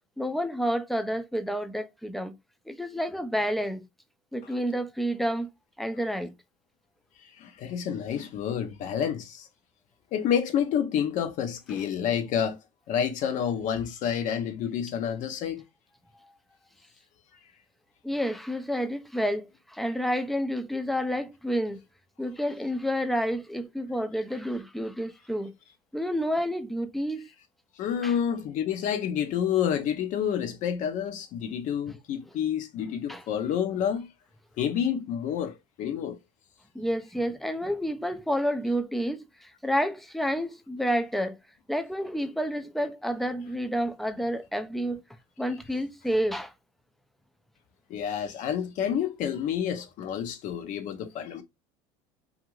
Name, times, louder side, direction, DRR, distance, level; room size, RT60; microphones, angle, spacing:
voice 1, 0.2-2.3 2.7-3.9 4.3-5.5 5.8-6.3 11.7-11.9 16.2-16.3 18.0-21.8 22.2-25.5 25.9-27.3 28.0-28.1 33.1-33.2 36.7-41.4 41.7-45.0 45.4-46.5, equal, ahead, 0.4 m, -29 dB
voice 2, 7.2-9.5 10.1-12.6 12.9-15.6 27.8-34.1 34.6-36.2 47.9-51.4, left 8 dB, 55° left, 0.7 m, -29 dB
2.6 x 2.5 x 3.0 m
supercardioid pair, 95°, 16 cm